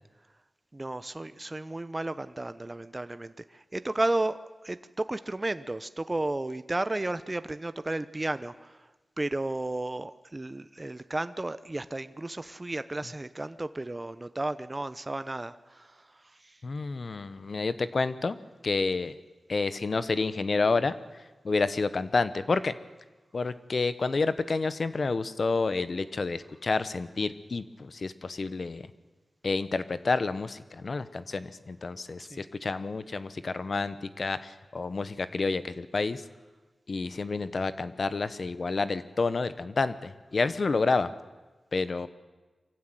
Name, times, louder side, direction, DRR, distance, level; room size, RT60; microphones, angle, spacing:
voice 1, 0.7-8.8 9.2-16.0 16.4-16.6 32.2-32.4, right 2 dB, 30° right, 13 dB, 0.9 m, -33 dB
voice 2, 16.6-18.4 18.6-19.1 19.5-20.9 21.4-22.7 23.3-28.8 29.4-36.2 36.9-41.1 41.7-42.1, left 3 dB, 60° left, 13 dB, 1.1 m, -29 dB
23.5 x 15.0 x 9.3 m, 1.2 s
cardioid pair, 60°, 0 cm